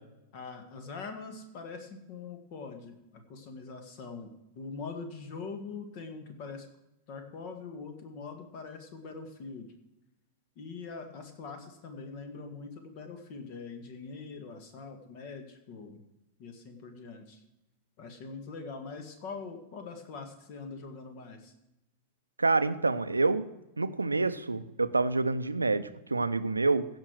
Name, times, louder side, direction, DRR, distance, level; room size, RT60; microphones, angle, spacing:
voice 1, 0.3-6.7 7.1-9.7 10.6-16.0 16.4-17.4 18.0-21.5, left 4 dB, 45° left, 6 dB, 1.8 m, -43 dB
voice 2, 22.4-23.4 23.8-26.9, right 3 dB, 80° right, 12 dB, 0.6 m, -27 dB
16.0 x 5.4 x 6.1 m, 0.91 s
figure-of-eight pair, 90°, 0 cm